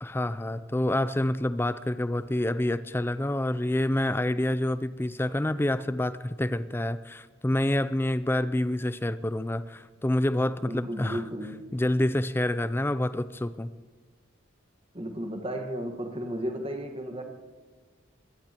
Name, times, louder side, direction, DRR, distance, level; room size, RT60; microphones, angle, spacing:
voice 1, 0.0-11.2 11.7-13.7, left 1 dB, 10° left, 13 dB, 0.4 m, -27 dB
voice 2, 10.7-11.7 14.9-17.2, equal, 25° right, 4 dB, 1.5 m, -34 dB
24.0 x 17.5 x 3.0 m, 1.5 s
head